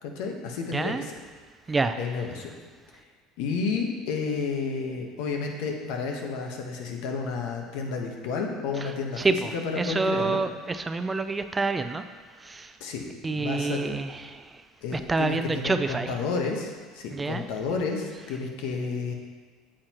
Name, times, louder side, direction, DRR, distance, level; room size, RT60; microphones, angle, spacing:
voice 1, 0.0-1.1 2.0-2.5 3.4-9.2 9.5-10.4 12.8-13.9 14.8-19.1, left 4 dB, 75° left, 2 dB, 1.2 m, -31 dB
voice 2, 0.7-1.1 1.7-2.0 8.8-8.9 9.2-12.0 12.4-12.8 13.2-14.6 14.9-16.1 17.1-17.4, right 3 dB, 20° right, 9 dB, 0.5 m, -28 dB
8.6 x 7.5 x 3.0 m, 1.5 s
supercardioid pair, 85°, 0 cm